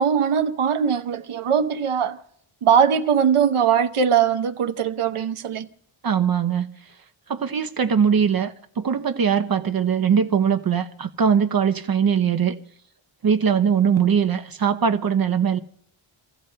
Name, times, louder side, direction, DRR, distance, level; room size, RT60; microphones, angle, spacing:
voice 1, 0.0-2.2 2.6-5.7, right 7 dB, 85° right, 0.9 m, -20 dB
voice 2, 6.0-6.7 7.3-12.6 13.2-15.6, right 7 dB, 45° right, 0.6 m, -21 dB
29.0 x 16.0 x 2.2 m
wide cardioid pair, 115°, 49 cm